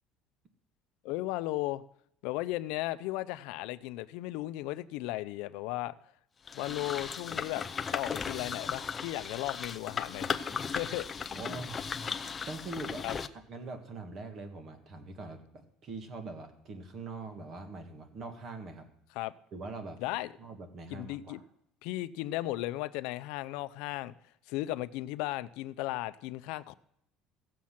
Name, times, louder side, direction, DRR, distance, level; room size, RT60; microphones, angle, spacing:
voice 1, 1.0-1.8 2.2-5.9 6.5-7.6 7.9-10.4 10.7-11.1 13.0-13.2 19.1-19.3 20.0-20.3 20.9-21.4 21.8-24.1 24.5-26.7, left 17 dB, 75° left, 14 dB, 0.5 m, -35 dB
sound 1, 6.5-13.3, left 6 dB, 25° left, 0.5 m, -36 dB
voice 2, 11.3-11.8 12.5-13.1 13.5-18.9 19.5-20.0 20.4-21.4, right 3 dB, 40° right, 6 dB, 1.8 m, -43 dB
16.0 x 7.5 x 5.8 m, 0.75 s
cardioid pair, 145°, 0 cm